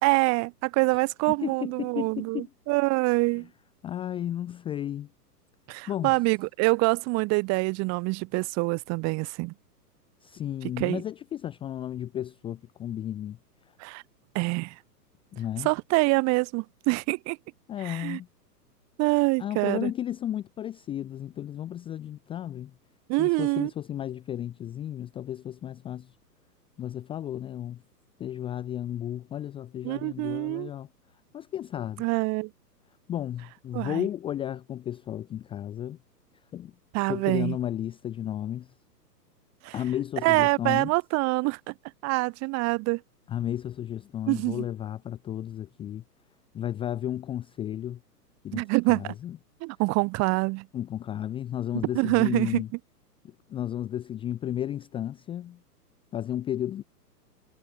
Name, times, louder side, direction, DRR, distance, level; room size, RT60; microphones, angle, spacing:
voice 1, 0.0-3.5 5.7-9.5 10.8-11.0 13.8-14.0 14.3-14.7 15.6-17.4 17.8-18.2 19.0-19.9 23.1-23.7 29.8-30.7 32.0-32.5 33.7-34.1 36.9-37.6 39.6-39.7 40.2-41.7 42.0-43.0 44.3-44.6 48.5-49.1 49.6-50.7 51.9-52.6, right 26 dB, 30° right, 2.2 m, -25 dB
voice 2, 1.3-2.5 3.2-3.5 3.8-5.1 5.9-6.1 10.2-13.4 15.3-15.7 17.7-18.3 19.4-22.7 23.2-26.1 26.8-27.8 28.2-30.9 31.3-32.0 33.1-36.0 36.5-36.7 37.1-38.7 39.7-40.9 43.3-46.0 46.5-48.0 48.4-48.6 48.9-49.4 50.7-52.7 53.2-55.6 56.1-56.8, left 11 dB, 10° left, 0.6 m, -33 dB
hypercardioid pair, 120°, 49 cm